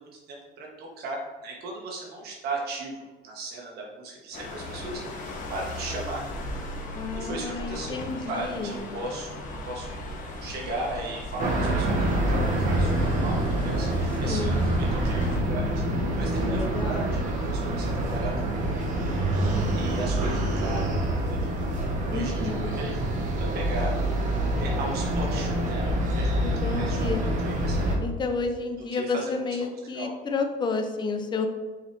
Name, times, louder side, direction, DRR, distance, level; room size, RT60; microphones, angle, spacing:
voice 1, 0.0-6.2 6.5-6.7 7.1-8.0 8.3-10.0 10.4-14.6 14.9-18.7 19.7-20.9 21.3-21.8 22.1-24.1 24.6-27.8 28.9-29.3 29.9-30.1, right 2 dB, 60° right, -2 dB, 1.4 m, -37 dB
sound 1, 4.3-15.4, left 1 dB, 45° left, 1.1 m, -36 dB
voice 2, 6.9-8.9 14.2-14.6 16.4-17.1 22.1-22.7 26.4-27.2 28.0-31.5, left 4 dB, 25° left, 5 dB, 0.6 m, -31 dB
sound 2, 11.4-28.0, right 1 dB, 40° right, 1.3 m, -26 dB
6.1 x 4.8 x 3.3 m, 1.3 s
cardioid pair, 135°, 19 cm